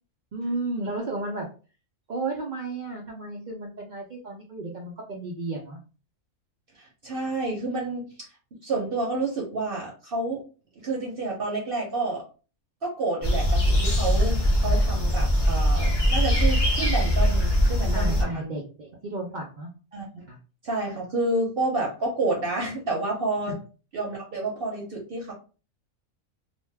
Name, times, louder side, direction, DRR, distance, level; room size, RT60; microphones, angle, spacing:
voice 1, 0.3-1.5 2.1-5.8 17.9-19.7 20.3-20.4 23.5-23.6, right 2 dB, 85° right, -1 dB, 0.4 m, -33 dB
voice 2, 6.7-10.4 10.8-12.2 12.8-18.5 19.9-20.3 20.6-23.6 23.9-25.3, right 2 dB, 55° right, -1 dB, 0.7 m, -29 dB
sound 1, 13.2-18.2, equal, 40° left, 0.3 m, -22 dB
2.5 x 2.1 x 3.2 m, 0.35 s
omnidirectional pair, 1.5 m